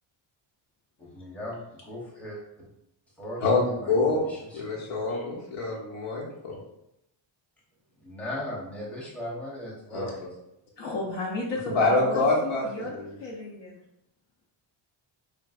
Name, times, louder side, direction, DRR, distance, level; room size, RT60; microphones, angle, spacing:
voice 1, 1.0-2.4 3.2-5.2 8.0-10.2, left 1 dB, 5° left, -5 dB, 0.7 m, -38 dB
voice 2, 3.4-4.2 4.5-6.6 9.9-10.1 11.7-13.2, left 3 dB, 80° left, -3 dB, 1.1 m, -26 dB
voice 3, 10.8-12.9 13.2-13.8, left 2 dB, 60° left, -2 dB, 0.7 m, -33 dB
3.3 x 2.5 x 2.4 m, 0.81 s
wide cardioid pair, 125°, 50 cm